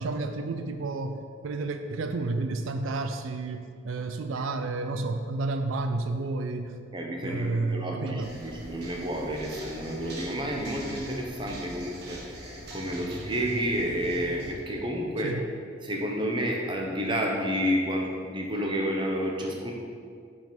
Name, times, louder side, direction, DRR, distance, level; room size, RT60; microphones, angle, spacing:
voice 1, 0.0-6.7 7.2-8.3 15.2-15.4, right 3 dB, 90° right, 7 dB, 0.4 m, -31 dB
voice 2, 6.9-15.4 15.8-19.7, equal, 25° right, 0 dB, 0.8 m, -30 dB
sound 1, 8.2-14.5, equal, 50° right, 1.2 m, -42 dB
5.3 x 5.2 x 6.0 m, 2.2 s
head